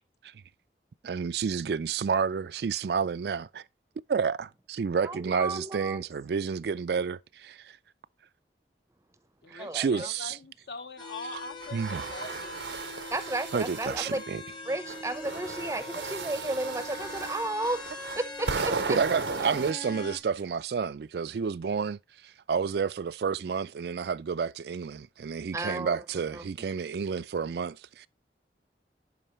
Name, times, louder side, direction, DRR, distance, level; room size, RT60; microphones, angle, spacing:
voice 1, 1.0-3.6 4.1-7.8 9.5-10.4 11.7-12.1 13.5-14.4 18.9-22.0 22.2-28.1, right 6 dB, 65° right, 0.4 m, -30 dB
voice 2, 5.0-6.0 9.6-9.9 13.1-14.2 14.7-17.8 18.2-19.0 25.5-26.0 26.3-26.4, right 2 dB, 15° right, 0.6 m, -33 dB
voice 3, 9.4-12.6 18.4-18.9, left 3 dB, 60° left, 0.9 m, -43 dB
sound 1, 11.0-20.2, left 2 dB, 25° left, 1.0 m, -42 dB
sound 2, 11.6-14.2 14.9-19.7, right 4 dB, 80° right, 0.7 m, -36 dB
11.0 x 4.6 x 3.1 m
head